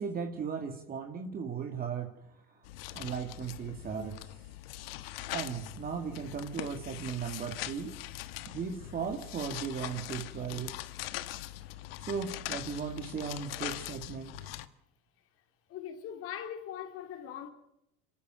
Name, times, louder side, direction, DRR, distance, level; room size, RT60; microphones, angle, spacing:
voice 1, 0.0-2.6 2.9-4.3 5.3-8.0 8.5-10.8 12.0-14.5, right 6 dB, 30° right, 2.2 m, -37 dB
sound 1, 2.6-14.7, left 15 dB, 80° left, 1.4 m, -42 dB
voice 2, 15.7-17.5, left 9 dB, 50° left, 3.6 m, -41 dB
25.5 x 13.5 x 9.5 m
supercardioid pair, 110°, 29 cm